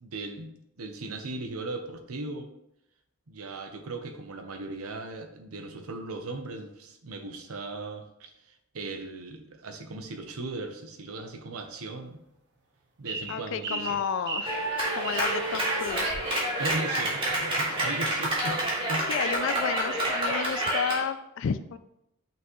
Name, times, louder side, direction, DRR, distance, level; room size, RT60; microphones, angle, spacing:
voice 1, 0.0-2.5 3.3-8.3 8.7-12.2 13.0-14.0 16.6-19.2, right 2 dB, 85° right, 6 dB, 0.8 m, -38 dB
sound 1, 13.0-15.4, right 4 dB, 50° right, 1.0 m, -35 dB
voice 2, 13.3-14.6 14.9-16.2 19.0-21.8, left 7 dB, 60° left, 12 dB, 0.3 m, -31 dB
Clapping, 14.5-21.0, right 1 dB, 25° right, 1.9 m, -28 dB
5.9 x 5.9 x 3.0 m, 0.83 s
head